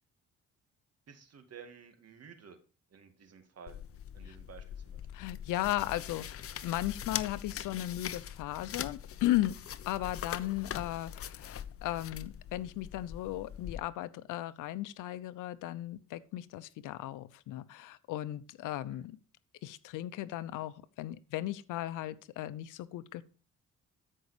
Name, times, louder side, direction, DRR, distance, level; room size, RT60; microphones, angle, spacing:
voice 1, 1.1-2.6 2.9-3.8 4.1-5.1 18.9-19.1, right 7 dB, 55° right, 7 dB, 2.2 m, -53 dB
sound 1, 3.7-13.8, left 9 dB, 50° left, 0.7 m, -42 dB
voice 2, 5.1-9.6 9.9-19.2 19.6-23.2, left 15 dB, 90° left, 16 dB, 0.7 m, -36 dB
13.5 x 5.5 x 5.0 m, 0.36 s
cardioid pair, 90°, 30 cm